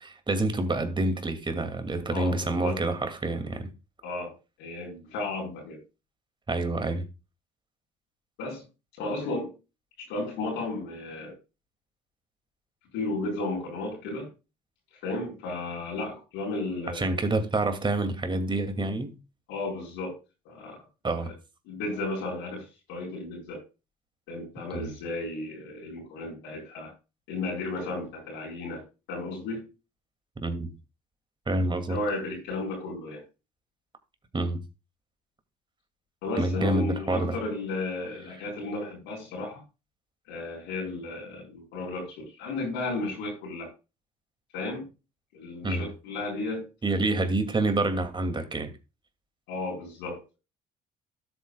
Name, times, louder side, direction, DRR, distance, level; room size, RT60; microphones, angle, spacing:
voice 1, 0.3-3.7 6.5-7.0 16.9-19.2 21.0-21.3 24.7-24.9 30.4-30.7 31.5-32.0 34.3-34.6 36.4-37.4 45.6-45.9 46.8-48.7, right 2 dB, 25° right, 2.5 m, -27 dB
voice 2, 2.1-2.8 4.0-5.8 8.4-8.6 9.0-9.5 10.0-11.4 12.9-14.3 15.0-17.1 19.5-20.2 20.4-20.8 21.2-21.3 21.7-23.6 24.3-26.9 27.3-29.7 31.9-33.2 36.2-39.6 40.3-43.7 44.5-44.9 45.3-46.7 49.5-50.4, left 2 dB, 80° left, 4.5 m, -34 dB
13.0 x 8.2 x 2.4 m
supercardioid pair, 65°, 19 cm